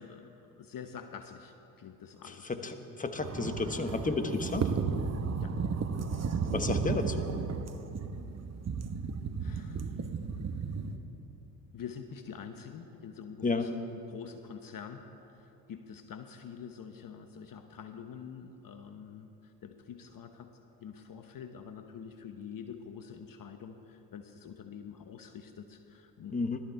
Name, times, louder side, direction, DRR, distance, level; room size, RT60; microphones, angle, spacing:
voice 1, 0.0-2.7 5.4-5.6 9.4-10.1 10.4-10.8 11.7-20.5 20.8-26.4, left 7 dB, 45° left, 7 dB, 1.0 m, -46 dB
voice 2, 2.5-4.7 6.5-7.3 13.4-13.7 26.3-26.6, left 3 dB, 15° left, 7 dB, 1.2 m, -32 dB
sound 1, 3.2-11.0, right 5 dB, 30° right, 1.1 m, -34 dB
17.5 x 13.0 x 4.6 m, 3.0 s
hypercardioid pair, 55°, 49 cm